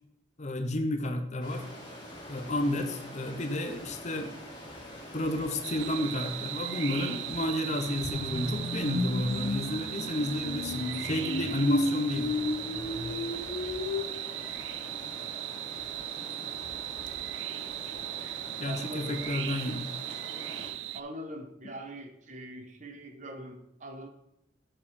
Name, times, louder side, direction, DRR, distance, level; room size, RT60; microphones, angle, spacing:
voice 1, 0.4-1.6 2.3-4.3 5.1-12.3 18.6-19.9, left 1 dB, 40° left, 7 dB, 0.8 m, -31 dB
Stream, 1.4-20.7, equal, 25° left, 2.6 m, -45 dB
sound 1, 5.6-21.0, right 14 dB, 75° right, 0.3 m, -38 dB
sound 2, 8.0-14.0, left 2 dB, 80° left, 0.8 m, -33 dB
voice 2, 18.7-19.2 20.9-24.1, right 1 dB, 40° right, 5 dB, 0.9 m, -42 dB
7.3 x 6.8 x 3.7 m, 0.83 s
head